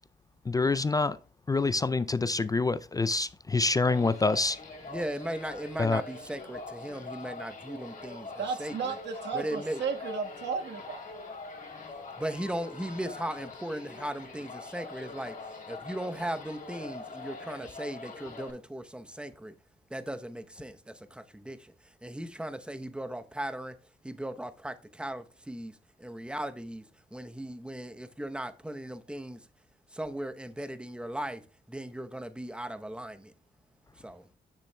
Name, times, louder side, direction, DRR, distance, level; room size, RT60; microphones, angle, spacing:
voice 1, 0.5-1.2 1.5-4.6 5.8-6.0, left 3 dB, 20° left, 0.3 m, -26 dB
sound 1, 3.9-18.5, left 3 dB, 45° left, 3.1 m, -44 dB
voice 2, 4.9-9.0 9.3-9.8 12.2-19.6 19.9-29.5 29.9-33.3 33.9-34.3, right 1 dB, 5° right, 0.8 m, -38 dB
voice 3, 8.4-11.0, right 5 dB, 75° right, 1.4 m, -34 dB
10.0 x 6.8 x 2.2 m
cardioid pair, 90°, 18 cm